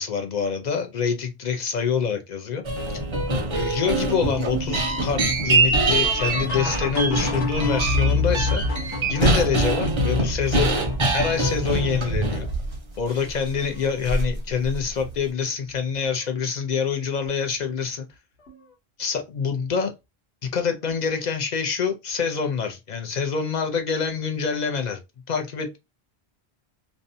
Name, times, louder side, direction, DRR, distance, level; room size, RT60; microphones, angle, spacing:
voice 1, 0.0-2.6 3.5-10.8 11.1-12.5 13.0-18.1 19.0-19.9 20.4-25.0 25.3-25.8, left 6 dB, 55° left, 0.5 m, -26 dB
sound 1, 2.6-12.7 13.1-13.2 14.0-14.4 14.6-15.1, right 2 dB, 35° right, 0.5 m, -24 dB
sound 2, 3.9-11.6 12.3-12.8 13.2-13.9 15.1-15.2 16.0-16.3 18.5-18.6 20.9-21.0, left 2 dB, 90° left, 1.2 m, -29 dB
2.6 x 2.1 x 2.6 m
omnidirectional pair, 1.1 m